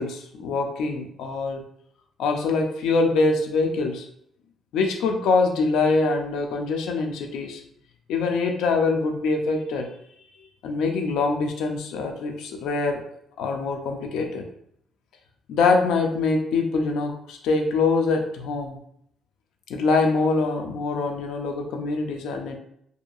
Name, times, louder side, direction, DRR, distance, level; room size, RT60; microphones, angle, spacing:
voice 1, 0.0-1.6 2.2-4.1 4.7-7.6 8.1-9.9 10.6-13.0 13.4-14.4 15.5-18.8 19.7-22.6, left 3 dB, 85° left, 4 dB, 0.4 m, -24 dB
2.7 x 2.5 x 2.3 m, 0.69 s
cardioid pair, 90°, 0 cm